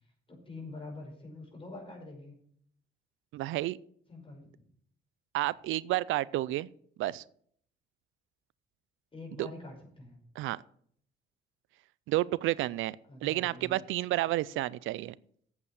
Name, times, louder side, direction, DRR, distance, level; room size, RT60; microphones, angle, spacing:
voice 1, 0.3-2.4 4.1-4.6 9.1-10.2 13.1-13.8, left 2 dB, 25° left, 1 dB, 5.3 m, -45 dB
voice 2, 3.3-3.8 5.3-6.7 7.0-7.2 9.4-9.5 10.4-10.6 12.1-13.0 13.2-15.1, right 16 dB, 85° right, 21 dB, 0.4 m, -30 dB
8.3 x 8.3 x 6.9 m, 0.63 s
cardioid pair, 90°, 20 cm